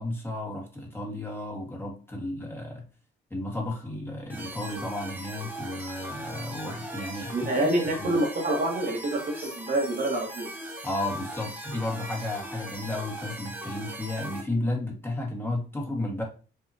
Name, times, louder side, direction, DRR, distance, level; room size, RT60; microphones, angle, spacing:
voice 1, 0.0-2.9 3.3-7.7 8.0-8.1 10.8-16.2, left 2 dB, 10° left, -1 dB, 1.5 m, -33 dB
sound 1, 4.3-14.4, right 1 dB, 10° right, 1.6 m, -39 dB
voice 2, 7.3-10.5, right 1 dB, 45° right, 0 dB, 1.6 m, -27 dB
5.6 x 2.8 x 2.8 m, 0.36 s
cardioid pair, 90°, 20 cm